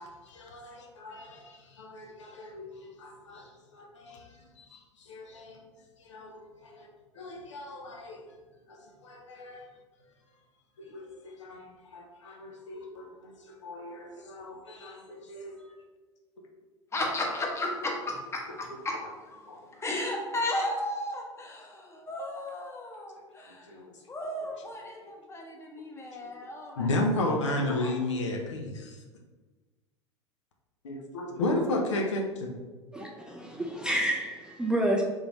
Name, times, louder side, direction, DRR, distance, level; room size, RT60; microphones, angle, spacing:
voice 1, 0.0-2.7 3.0-5.7 6.0-6.9 7.1-8.3 8.7-9.7 10.8-15.6 19.5-19.7 23.5-23.9 26.8-29.0 30.8-32.5, left 1 dB, 75° left, 1 dB, 0.7 m, -34 dB
voice 2, 16.9-19.5 19.8-23.7 24.1-28.0, left 1 dB, 15° left, 0 dB, 0.9 m, -35 dB
voice 3, 32.9-35.0, right 1 dB, 5° right, -1 dB, 0.4 m, -29 dB
3.5 x 3.4 x 3.0 m, 1.3 s
figure-of-eight pair, 85°, 16 cm